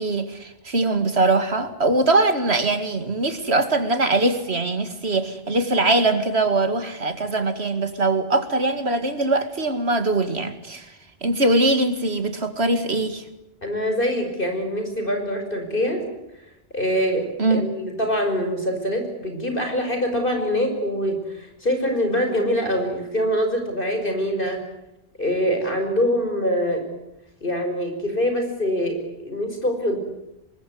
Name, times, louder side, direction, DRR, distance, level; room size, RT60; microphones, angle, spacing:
voice 1, 0.0-10.9 11.2-13.2 17.4-17.7, right 2 dB, 70° right, 9 dB, 2.5 m, -22 dB
voice 2, 13.6-16.0 16.7-24.6 25.2-26.8 27.4-30.0, equal, 50° left, 5 dB, 5.8 m, -24 dB
25.0 x 21.0 x 9.4 m, 0.90 s
omnidirectional pair, 1.1 m